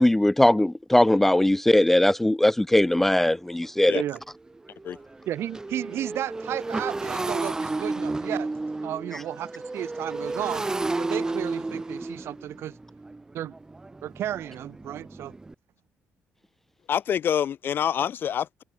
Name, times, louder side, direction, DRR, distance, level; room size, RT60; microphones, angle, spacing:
voice 1, 0.0-4.0, left 1 dB, 5° left, 0.4 m, -20 dB
Motorcycle, 2.9-3.0 3.5-3.7 3.9-15.5, right 2 dB, 15° right, 0.9 m, -32 dB
voice 2, 5.3-8.5 8.8-10.7 11.0-12.8 13.3-13.5 14.0-15.3, right 12 dB, 70° right, 4.7 m, -33 dB
voice 3, 16.9-18.6, left 9 dB, 50° left, 1.6 m, -26 dB
cardioid pair, 130°, 4 cm